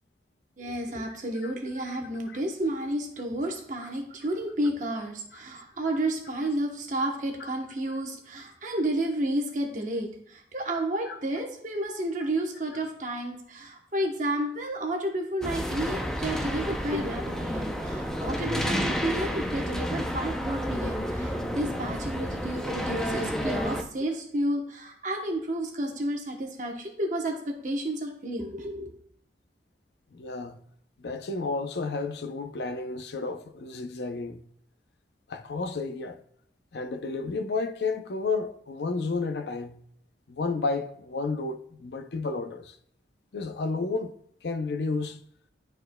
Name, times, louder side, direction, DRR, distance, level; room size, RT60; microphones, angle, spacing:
voice 1, 0.6-28.9, right 1 dB, 45° right, 0.9 m, -31 dB
sound 1, 15.4-23.8, equal, 5° left, 0.5 m, -30 dB
voice 2, 30.1-30.6 31.0-34.4 35.3-36.2 36.7-39.8 40.3-42.8 43.3-44.1 44.4-45.2, left 3 dB, 65° left, 0.5 m, -31 dB
11.5 x 4.4 x 2.2 m
head